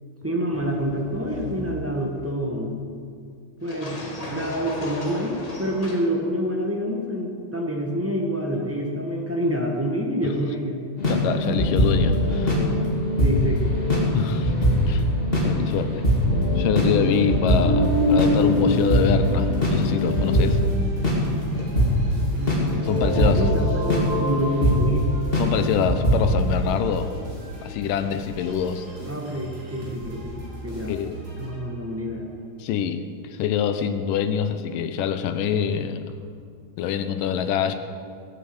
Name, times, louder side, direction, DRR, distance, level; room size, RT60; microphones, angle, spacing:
voice 1, 0.2-2.8 3.6-10.8 13.2-13.7 14.2-14.3 17.1-17.4 22.3-22.8 23.2-25.1 29.0-31.0 31.4-32.3, equal, 15° right, -1 dB, 0.4 m, -27 dB
sound 1, 0.5-2.3 3.6-6.1, left 1 dB, 75° left, 0.3 m, -37 dB
voice 2, 11.0-12.6 14.1-14.5 14.9-15.0 15.4-16.1 16.6-20.6 22.8-23.4 25.4-27.1 27.6-28.9 30.9-31.2 32.6-36.1 36.8-37.8, left 8 dB, 90° left, 9 dB, 2.5 m, -25 dB
sound 2, 11.0-21.2 21.6-21.9 22.5-24.9 25.2-25.5 25.9-26.2, equal, 15° left, 3.0 m, -21 dB
sound 3, 17.8-32.1, right 1 dB, 60° right, 5.3 m, -39 dB
19.5 x 8.8 x 8.0 m, 2.3 s
omnidirectional pair, 3.7 m